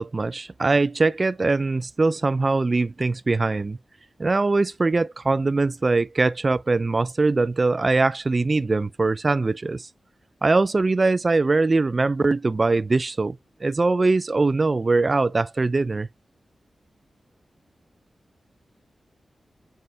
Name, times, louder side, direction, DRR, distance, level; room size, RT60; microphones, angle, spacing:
voice 1, 0.0-3.8 4.2-9.9 10.4-16.1, right 3 dB, 35° right, 0.4 m, -22 dB
7.8 x 5.4 x 2.3 m
wide cardioid pair, 90°, 0 cm